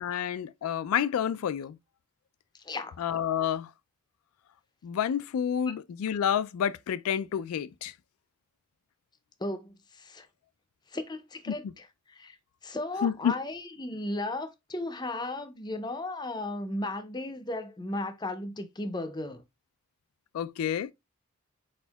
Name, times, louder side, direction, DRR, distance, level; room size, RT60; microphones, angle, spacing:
voice 1, 0.0-1.8 3.0-3.7 4.8-7.9 13.0-13.3 20.3-20.9, left 8 dB, 80° left, 0.3 m, -29 dB
voice 2, 2.6-3.0 5.7-5.8 9.4-10.3 10.9-12.4 12.6-19.4, left 2 dB, 20° left, 0.5 m, -35 dB
4.4 x 4.3 x 2.2 m
head